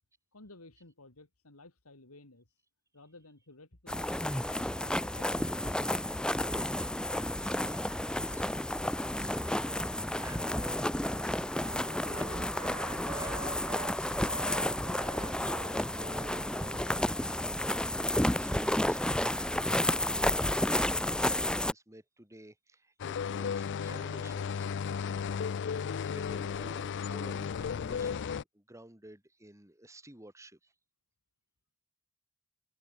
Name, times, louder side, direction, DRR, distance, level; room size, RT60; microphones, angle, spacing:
voice 1, 0.3-2.6 2.9-5.8, left 2 dB, 80° left, 3.2 m, -55 dB
sound 1, 3.9-21.7, left 1 dB, 5° left, 0.7 m, -31 dB
voice 2, 7.2-17.3 18.4-25.5 25.8-30.7, right 1 dB, 15° right, 4.4 m, -52 dB
Wind instrument woodwind instrument, 10.4-13.9 14.2-18.7, right 3 dB, 30° right, 2.6 m, -47 dB
sound 2, 23.0-28.4, left 6 dB, 55° left, 0.4 m, -34 dB
head